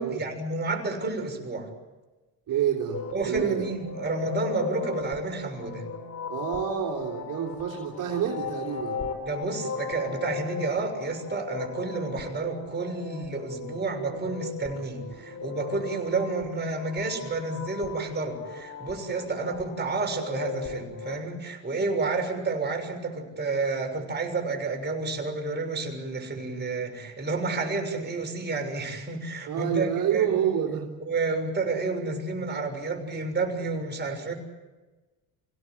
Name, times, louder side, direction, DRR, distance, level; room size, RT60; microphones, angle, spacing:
voice 1, 0.0-1.7 3.1-5.9 9.2-30.4 31.0-34.3, right 3 dB, 25° right, 3 dB, 6.5 m, -30 dB
voice 2, 2.5-3.6 6.3-9.1 29.5-30.9, right 9 dB, 55° right, -2 dB, 3.4 m, -28 dB
sound 1, 2.9-21.2, left 5 dB, 40° left, 5.6 m, -38 dB
26.5 x 17.5 x 9.5 m, 1.2 s
supercardioid pair, 90°, 38 cm